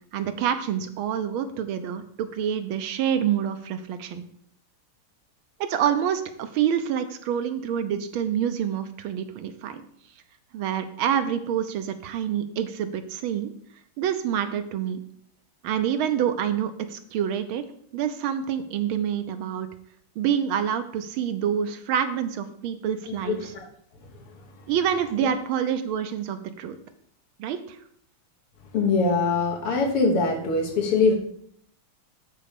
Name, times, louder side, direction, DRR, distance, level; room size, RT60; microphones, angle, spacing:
voice 1, 0.1-4.2 5.6-9.8 10.5-13.5 14.0-15.0 15.6-17.6 17.9-19.7 20.2-23.5 24.7-26.8 27.4-27.8, right 9 dB, 75° right, 9 dB, 1.5 m, -27 dB
voice 2, 23.3-23.7 28.7-31.1, left 4 dB, 90° left, 1 dB, 2.4 m, -22 dB
8.5 x 4.2 x 6.7 m, 0.65 s
omnidirectional pair, 2.4 m